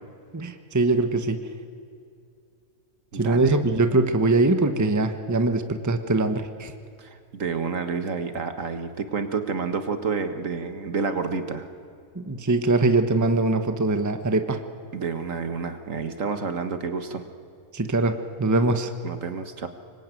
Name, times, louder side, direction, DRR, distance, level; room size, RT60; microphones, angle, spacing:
voice 1, 0.3-1.4 3.1-6.7 12.1-14.6 17.7-18.9, right 2 dB, 15° right, 8 dB, 1.0 m, -22 dB
voice 2, 3.1-3.6 7.0-11.7 14.9-17.2 19.0-19.7, right 5 dB, 60° right, 8 dB, 1.9 m, -29 dB
25.5 x 22.0 x 9.2 m, 2.4 s
omnidirectional pair, 1.5 m